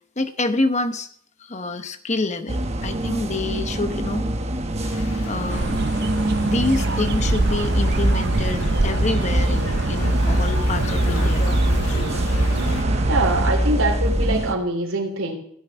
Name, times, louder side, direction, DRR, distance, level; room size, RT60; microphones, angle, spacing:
voice 1, 0.2-1.1 1.4-4.2 5.3-5.9 6.4-11.5, left 2 dB, 30° left, 9 dB, 1.0 m, -27 dB
sound 1, 2.5-14.5, right 1 dB, 30° right, 1.1 m, -24 dB
sound 2, 4.8-12.8, left 2 dB, 80° left, 1.6 m, -34 dB
sound 3, 5.5-13.5, right 3 dB, 50° right, 0.7 m, -25 dB
voice 2, 13.1-15.3, right 2 dB, 70° right, -1 dB, 3.3 m, -23 dB
16.0 x 7.2 x 9.2 m, 0.67 s
head